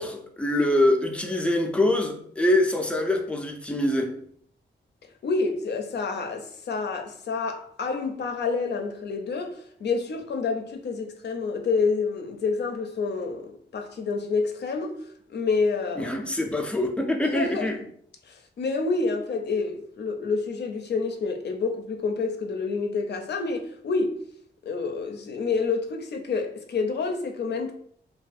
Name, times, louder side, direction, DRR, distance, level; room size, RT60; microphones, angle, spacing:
voice 1, 0.0-4.1 16.0-17.8, left 1 dB, 5° left, 0.4 m, -24 dB
voice 2, 5.2-15.0 15.3-16.2 17.2-17.7 18.2-24.2 24.6-27.7, left 4 dB, 65° left, 0.5 m, -28 dB
2.5 x 2.3 x 2.4 m
cardioid pair, 60°, 19 cm